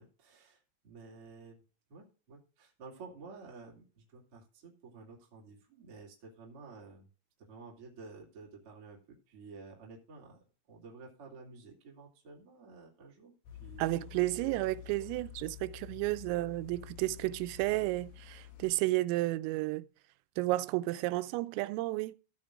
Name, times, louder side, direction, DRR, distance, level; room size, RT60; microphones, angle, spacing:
voice 1, 0.0-1.6 1.9-7.1 7.4-10.4 10.7-13.3 13.6-14.0 14.6-14.8 15.0-15.3 16.0-16.2, right 4 dB, 35° right, 2.7 m, -52 dB
sound 1, 13.4-18.7, left 13 dB, 60° left, 3.7 m, -50 dB
voice 2, 13.8-19.8 20.4-22.2, right 18 dB, 90° right, 3.3 m, -32 dB
16.0 x 8.7 x 2.5 m
omnidirectional pair, 5.8 m